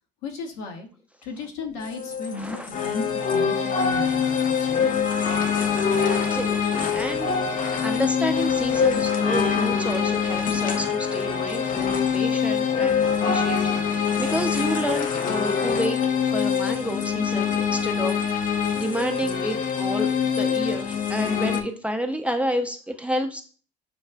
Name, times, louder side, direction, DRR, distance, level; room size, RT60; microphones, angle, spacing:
voice 1, 0.2-0.9 1.2-4.9, left 4 dB, 75° left, 3 dB, 0.9 m, -35 dB
sound 1, 1.8-21.6, left 6 dB, 40° left, 0.6 m, -24 dB
voice 2, 2.3-2.7 6.1-7.3 7.8-18.3 18.7-20.1 20.3-23.4, equal, 5° right, 5 dB, 0.5 m, -30 dB
6.7 x 2.3 x 2.2 m, 0.42 s
hypercardioid pair, 70°, 21 cm